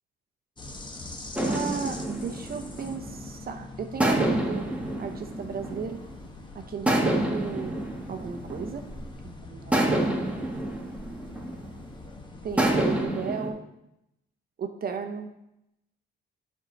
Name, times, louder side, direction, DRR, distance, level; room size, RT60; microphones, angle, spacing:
sound 1, 0.6-13.1, left 2 dB, 25° left, 1.1 m, -43 dB
sound 2, 1.3-3.4 4.0-6.3 6.9-9.1 9.7-11.9 12.6-13.5, right 1 dB, 5° right, 1.3 m, -28 dB
voice 1, 1.5-6.0 6.5-7.8 8.1-8.8 9.2-10.2 12.4-13.6 14.6-15.3, right 6 dB, 50° right, 6 dB, 0.7 m, -35 dB
7.3 x 4.6 x 5.2 m, 0.85 s
cardioid pair, 90°, 20 cm